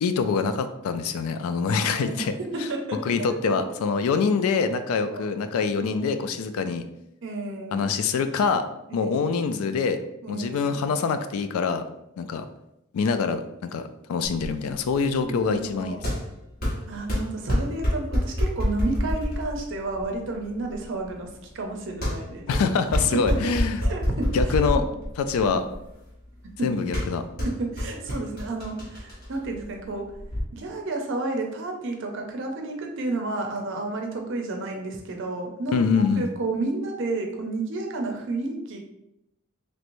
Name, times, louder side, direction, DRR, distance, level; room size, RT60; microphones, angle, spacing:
voice 1, 0.0-2.3 3.1-6.9 7.7-8.6 8.9-10.0 10.3-11.8 12.2-12.5 12.9-16.0 22.5-23.8 24.3-24.8 25.2-25.6 26.6-27.2 35.7-36.3, left 5 dB, 75° left, 9 dB, 0.3 m, -25 dB
voice 2, 1.8-2.3 2.5-3.7 4.9-5.3 5.8-6.2 7.2-7.8 8.9-9.4 10.2-10.8 15.3-16.0 16.9-22.5 23.1-23.5 23.8-24.4 24.7-24.9 25.4-25.6 26.6-26.8 27.4-30.1 30.5-38.8, right 2 dB, 55° right, 2 dB, 0.5 m, -31 dB
sound 1, 14.2-30.4, left 1 dB, 40° left, 0.9 m, -29 dB
3.1 x 3.0 x 2.6 m, 0.86 s
head